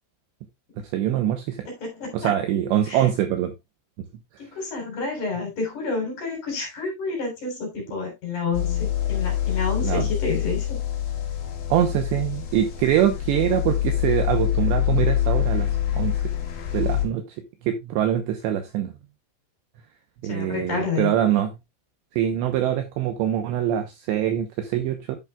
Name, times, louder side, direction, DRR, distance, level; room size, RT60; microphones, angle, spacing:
voice 1, 0.9-1.7 2.1-3.5 9.8-10.1 11.7-16.1 16.7-17.4 17.6-18.9 20.2-21.5 22.1-25.2, right 11 dB, 80° right, 2.6 m, -24 dB
voice 2, 1.6-2.3 2.9-3.1 4.4-10.8 20.3-21.1, left 4 dB, 40° left, 4.4 m, -29 dB
sound 1, 8.5-17.1, left 11 dB, 55° left, 2.9 m, -25 dB
10.5 x 8.5 x 2.3 m
omnidirectional pair, 6.0 m